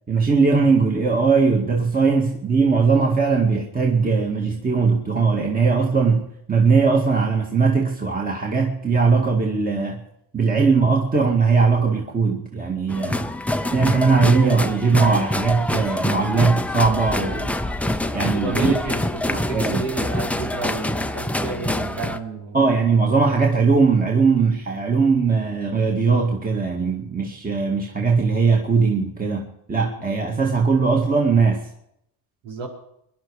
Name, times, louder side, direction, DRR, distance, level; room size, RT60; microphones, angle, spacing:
voice 1, 0.1-10.0 10.3-13.3 13.7-17.6 18.1-18.8 19.3-19.8 22.5-31.6, right 4 dB, 20° right, 2.0 m, -19 dB
sound 1, 12.9-22.2, left 1 dB, 5° left, 0.7 m, -25 dB
voice 2, 18.2-22.6 29.8-30.1 32.4-32.7, right 3 dB, 90° right, 5.0 m, -31 dB
22.0 x 11.5 x 4.9 m
cardioid pair, 105°, 44 cm